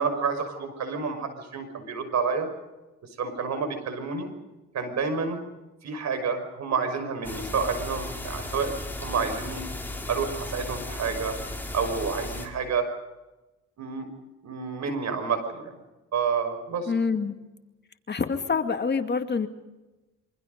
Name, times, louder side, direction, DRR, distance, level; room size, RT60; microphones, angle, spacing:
voice 1, 0.0-2.5 3.2-4.3 4.7-5.4 5.8-9.6 10.1-11.4 11.7-12.9 13.8-14.1 14.4-15.7 16.1-16.9, right 5 dB, 65° right, 8 dB, 5.9 m, -29 dB
sound 1, 7.2-12.5, left 2 dB, 5° left, 4.9 m, -36 dB
voice 2, 16.9-17.3 18.1-19.5, left 5 dB, 35° left, 6 dB, 2.4 m, -26 dB
27.5 x 25.0 x 5.4 m, 1.1 s
cardioid pair, 90°, 30 cm